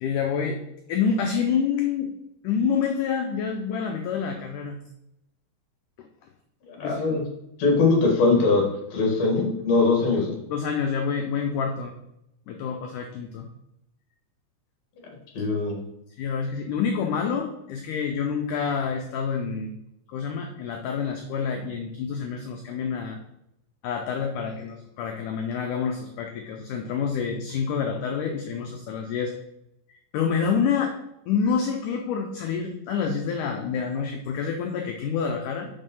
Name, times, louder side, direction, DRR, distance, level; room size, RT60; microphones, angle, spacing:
voice 1, 0.0-0.6 0.9-2.1 2.4-4.8 6.8-7.2 10.5-11.9 12.5-13.5 16.2-19.8 20.1-23.2 23.8-29.3 30.1-31.0 31.3-35.7, left 6 dB, 85° left, 3 dB, 1.8 m, -27 dB
voice 2, 6.8-7.2 7.6-8.6 8.9-10.3 15.3-15.8, left 3 dB, 50° left, 0 dB, 2.6 m, -21 dB
6.5 x 5.4 x 5.4 m, 0.83 s
omnidirectional pair, 4.5 m